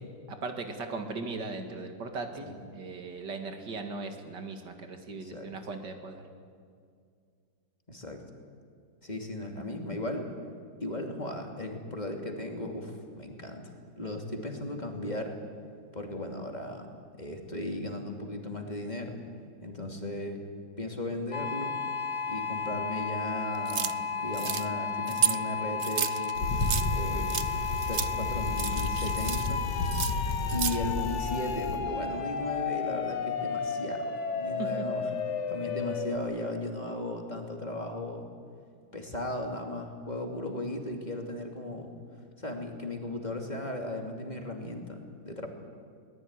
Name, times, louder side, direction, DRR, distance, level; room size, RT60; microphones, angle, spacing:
voice 1, 0.3-6.2 34.6-34.9, right 3 dB, 85° right, 6 dB, 2.7 m, -38 dB
voice 2, 5.2-5.5 7.9-8.2 9.0-10.3 10.8-13.6 14.0-15.3 15.9-16.9 17.2-19.2 19.6-20.4 20.8-21.8 22.2-26.5 26.9-27.4 27.9-29.6 30.5-35.1 35.5-38.3 38.9-41.9 42.4-45.5, left 1 dB, 25° left, 2 dB, 2.9 m, -36 dB
sound 1, 21.3-36.2, left 5 dB, 45° left, 1.3 m, -33 dB
sound 2, 23.6-23.9 24.3-24.7 25.1-25.4 25.8-26.9 27.3-27.5 27.8-28.1 28.5-29.5 29.8-30.8, right 8 dB, 65° right, 0.5 m, -31 dB
Bicycle, 26.3-31.8, left 3 dB, 85° left, 2.4 m, -32 dB
22.0 x 19.5 x 9.8 m, 2.2 s
omnidirectional pair, 1.8 m